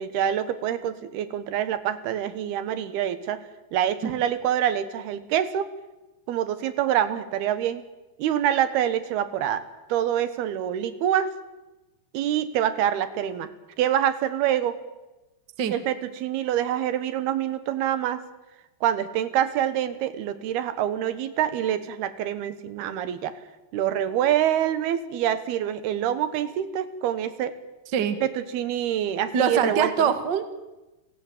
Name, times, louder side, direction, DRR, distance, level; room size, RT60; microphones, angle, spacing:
voice 1, 0.0-3.4 3.7-5.7 6.3-7.8 8.2-9.6 9.9-11.3 12.1-13.5 13.8-14.8 15.7-18.2 18.8-23.3 23.7-27.5 28.2-30.1, right 10 dB, 70° right, 13 dB, 3.1 m, -26 dB
voice 2, 29.3-30.5, right 7 dB, 55° right, 10 dB, 1.2 m, -23 dB
29.5 x 17.5 x 9.1 m, 1.1 s
omnidirectional pair, 4.9 m